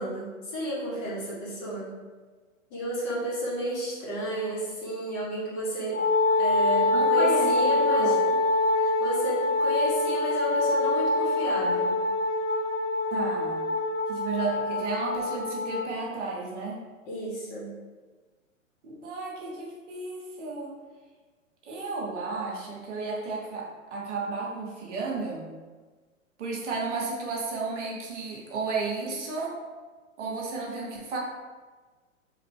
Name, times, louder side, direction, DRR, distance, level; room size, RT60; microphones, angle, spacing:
voice 1, 0.0-1.9 2.7-6.0 6.4-8.1 8.7-11.9 17.1-17.7, equal, 25° left, -7 dB, 1.1 m, -32 dB
Wind instrument woodwind instrument, 5.9-15.9, left 2 dB, 60° left, 0.6 m, -25 dB
voice 2, 6.9-8.3 13.1-13.6 14.1-16.8 18.8-20.7 21.6-25.5 26.4-29.6 30.2-31.2, right 4 dB, 60° right, -2 dB, 0.9 m, -33 dB
3.0 x 2.4 x 3.4 m, 1.4 s
figure-of-eight pair, 115°, 41 cm